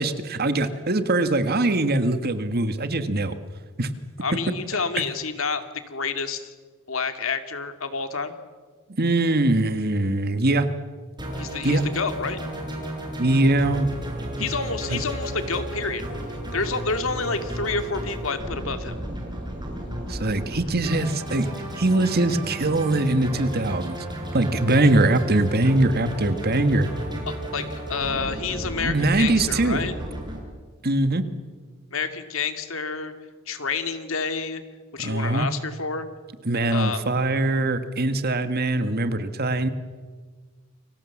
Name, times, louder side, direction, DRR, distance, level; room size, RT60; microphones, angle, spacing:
voice 1, 0.0-3.4 3.8-3.9 9.0-10.7 11.6-11.8 13.2-13.9 14.9-15.0 20.1-21.5 21.8-24.0 24.3-26.9 28.8-29.8 30.8-31.3 35.0-35.5 36.5-39.7, right 2 dB, 50° right, 10 dB, 1.8 m, -22 dB
voice 2, 4.2-6.5 6.9-8.3 11.3-12.4 14.4-16.0 16.5-18.9 27.3-29.9 31.9-33.1 33.5-34.6 34.9-36.1 36.7-37.0, left 4 dB, 70° left, 8 dB, 2.4 m, -29 dB
sound 1, 11.2-30.4, right 1 dB, 20° right, 5.9 m, -33 dB
30.0 x 24.0 x 7.4 m, 1.4 s
head